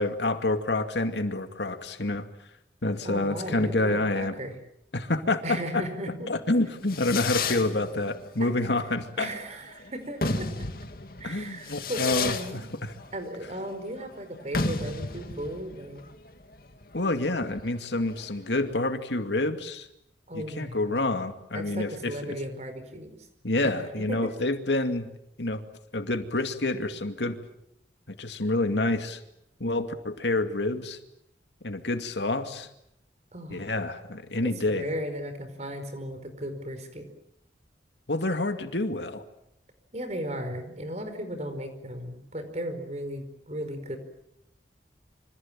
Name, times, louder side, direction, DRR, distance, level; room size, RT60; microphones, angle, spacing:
voice 1, 0.0-2.2 2.8-4.3 4.9-5.8 6.3-9.3 11.2-12.9 16.9-19.9 20.3-22.3 23.4-25.1 25.4-25.6 25.9-27.4 28.2-29.2 29.6-31.0 31.6-32.7 33.5-34.9 38.1-39.2, left 2 dB, 75° left, 7 dB, 2.4 m, -28 dB
voice 2, 3.0-4.6 5.4-6.3 7.5-7.6 8.4-8.8 9.2-10.5 11.2-12.6 13.1-16.0 20.3-21.0 21.5-23.2 23.6-23.7 24.1-24.2 33.3-33.7 34.4-37.1 39.9-44.0, equal, 40° right, 8 dB, 5.0 m, -36 dB
Fireworks, 6.5-18.7, left 4 dB, 55° left, 2.3 m, -34 dB
27.5 x 26.0 x 7.5 m, 0.78 s
head